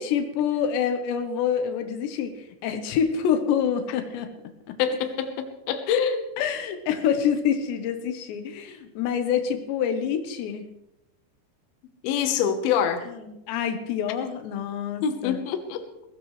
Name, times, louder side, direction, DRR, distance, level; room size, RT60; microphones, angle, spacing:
voice 1, 0.0-4.3 4.7-4.8 6.4-10.7 13.1-15.4, left 8 dB, 85° left, 7 dB, 3.4 m, -27 dB
voice 2, 4.8-6.3 12.0-13.0 15.0-15.9, left 7 dB, 70° left, 6 dB, 2.9 m, -25 dB
21.5 x 16.0 x 3.3 m, 0.88 s
omnidirectional pair, 4.9 m